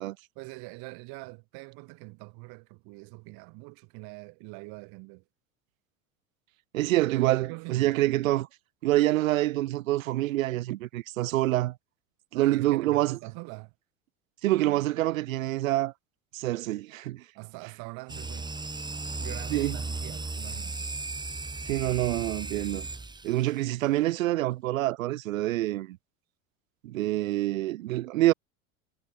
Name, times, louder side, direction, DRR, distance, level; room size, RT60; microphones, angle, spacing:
voice 1, 0.3-5.2 7.4-8.0 12.3-13.7 17.3-18.5 19.2-20.9, right 30 dB, 65° right, 6.2 m, -44 dB
voice 2, 6.7-8.5 8.8-11.8 12.3-13.2 14.4-15.9 16.3-17.2 19.5-19.8 21.6-22.9 23.2-26.0 26.8-28.3, right 16 dB, 85° right, 1.4 m, -26 dB
sound 1, 18.1-23.6, right 3 dB, 10° right, 1.7 m, -36 dB
hypercardioid pair, 95°, 39 cm